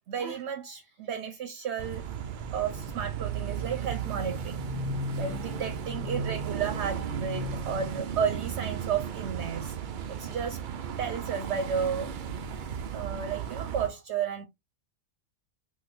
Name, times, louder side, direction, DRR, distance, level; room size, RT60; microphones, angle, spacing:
voice 1, 0.1-2.0 2.5-4.6 5.2-9.8 10.1-10.6 11.0-12.1 12.9-14.5, right 7 dB, 65° right, 0.8 m, -33 dB
sound 1, 1.8-13.9, right 6 dB, 90° right, 0.4 m, -34 dB
3.9 x 2.6 x 2.4 m
omnidirectional pair, 1.4 m